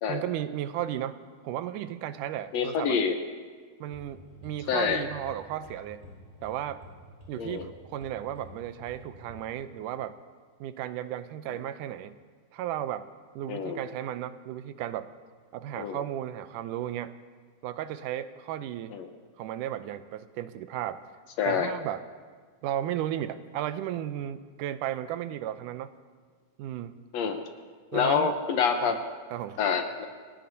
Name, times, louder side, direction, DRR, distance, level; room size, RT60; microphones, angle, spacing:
voice 1, 0.1-1.2 1.4-3.0 3.8-6.0 6.4-6.8 7.3-10.2 10.6-12.2 12.5-13.1 13.4-15.1 15.5-17.1 17.6-19.0 19.4-21.0 21.5-22.0 22.6-25.9 26.6-27.0 27.9-28.3 28.8-29.0 29.3-29.6, right 11 dB, 85° right, 12 dB, 2.2 m, -34 dB
voice 2, 2.5-3.2 4.7-5.0 7.4-7.7 11.5-11.6 13.5-13.8 15.8-16.0 18.9-19.1 21.4-21.7 27.1-27.5 27.9-29.0 29.6-30.1, left 6 dB, 70° left, 6 dB, 1.8 m, -27 dB
sound 1, 3.8-9.4, left 1 dB, 10° right, 5.4 m, -50 dB
29.0 x 18.0 x 2.8 m, 1.6 s
omnidirectional pair, 3.6 m